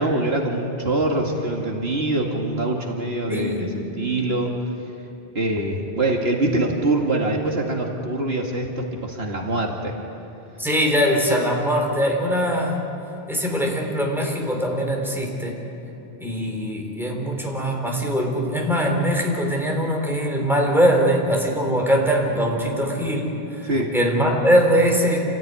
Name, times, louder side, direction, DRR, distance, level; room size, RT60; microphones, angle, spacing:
voice 1, 0.0-3.7 4.0-4.5 5.3-10.0 23.6-24.0, right 2 dB, 75° right, 1 dB, 2.3 m, -24 dB
voice 2, 3.3-3.7 10.6-12.8 13.3-15.7 16.2-25.2, equal, ahead, 0 dB, 3.8 m, -22 dB
28.5 x 14.5 x 9.6 m, 2.9 s
omnidirectional pair, 1.1 m